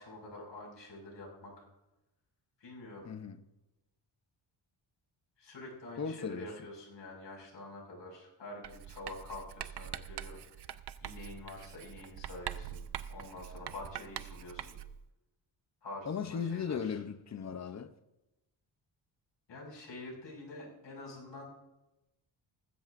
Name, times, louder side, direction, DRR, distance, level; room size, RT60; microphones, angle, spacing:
voice 1, 0.0-1.7 2.6-3.1 5.4-12.8 13.1-14.8 15.8-17.0 19.5-21.4, left 2 dB, 60° left, 5.7 m, -47 dB
voice 2, 3.0-3.4 6.0-6.5 16.1-17.9, left 6 dB, 35° left, 0.7 m, -37 dB
Writing, 8.6-15.0, right 10 dB, 60° right, 0.6 m, -44 dB
19.0 x 15.5 x 2.6 m
wide cardioid pair, 180°, 47 cm